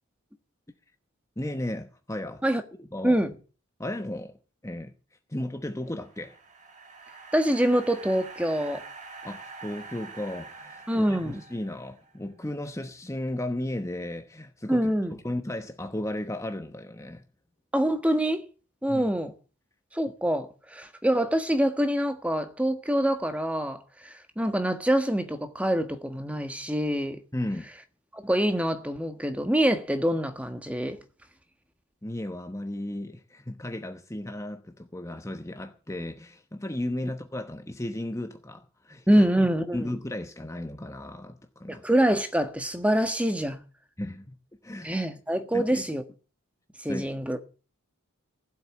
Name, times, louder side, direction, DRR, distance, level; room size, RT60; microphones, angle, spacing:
voice 1, 1.4-2.4 2.9-3.2 3.8-4.4 4.6-4.9 5.3-6.4 9.2-17.2 18.9-19.1 27.3-27.7 32.0-39.2 39.7-41.8 44.0-44.3 44.6-44.9 45.5-45.8 46.8-47.1, left 1 dB, 15° left, 1.0 m, -35 dB
sound 1, 5.8-12.2, right 4 dB, 35° right, 2.0 m, -45 dB
voice 2, 7.3-8.8 10.9-11.4 14.7-15.1 17.7-18.4 18.8-19.3 19.9-27.2 28.1-31.0 39.1-39.9 41.7-43.6 44.8-46.0 46.8-47.4, right 1 dB, 5° right, 1.4 m, -25 dB
16.0 x 7.9 x 8.7 m
head